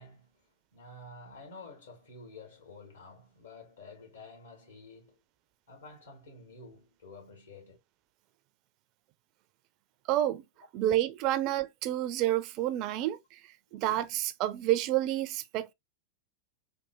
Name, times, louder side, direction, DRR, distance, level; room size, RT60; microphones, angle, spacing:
voice 1, 0.0-5.2 5.7-7.8 13.7-13.8, left 3 dB, 75° left, 1.9 m, -50 dB
voice 2, 10.1-10.4 10.7-13.4 13.7-15.7, right 13 dB, 40° right, 0.4 m, -29 dB
3.4 x 2.5 x 2.9 m
figure-of-eight pair, 90°, 0 cm